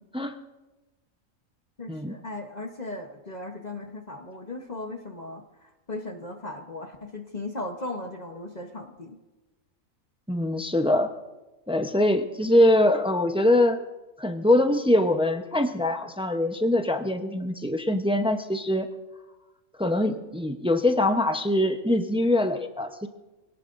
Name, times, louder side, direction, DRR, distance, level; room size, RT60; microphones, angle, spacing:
voice 1, 1.8-9.2, left 2 dB, 35° left, 4 dB, 1.0 m, -37 dB
voice 2, 10.3-11.1 11.7-13.8 14.2-18.9 19.8-23.1, left 1 dB, 5° right, 6 dB, 0.4 m, -23 dB
25.0 x 18.0 x 2.6 m, 1.1 s
omnidirectional pair, 1.4 m